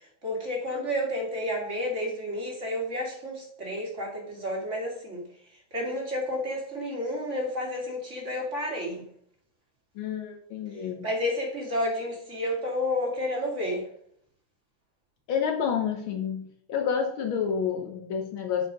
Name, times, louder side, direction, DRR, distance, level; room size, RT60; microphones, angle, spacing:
voice 1, 0.2-5.2 5.7-9.0 11.0-13.8, left 1 dB, 25° right, -1 dB, 2.2 m, -30 dB
voice 2, 9.9-11.1 15.3-18.7, left 7 dB, 90° left, 4 dB, 1.1 m, -29 dB
11.0 x 4.6 x 5.1 m, 0.68 s
omnidirectional pair, 3.5 m